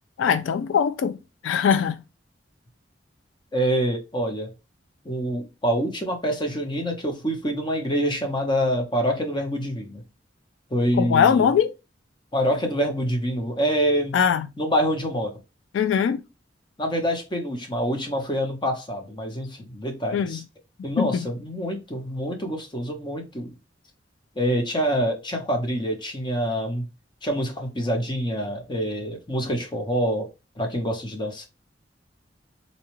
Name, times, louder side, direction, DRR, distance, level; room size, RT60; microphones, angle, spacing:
voice 1, 0.2-1.2 1.4-2.0 11.0-11.7 14.1-14.5 15.7-16.2 20.1-20.4 21.0-21.3, left 7 dB, 85° left, 0.3 m, -21 dB
voice 2, 3.5-4.5 5.0-10.0 10.7-11.5 12.3-14.2 14.6-15.3 16.8-20.4 20.8-23.5 24.4-26.8 27.2-30.3 30.6-31.5, equal, 25° left, 0.8 m, -26 dB
4.1 x 2.3 x 3.0 m
head